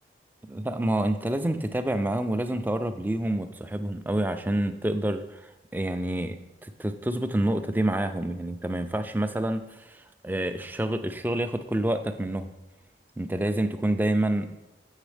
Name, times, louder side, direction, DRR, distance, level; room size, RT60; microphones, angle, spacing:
voice 1, 0.5-12.5 13.2-14.5, right 1 dB, 10° right, 9 dB, 0.3 m, -28 dB
7.3 x 6.8 x 3.3 m, 1.1 s
head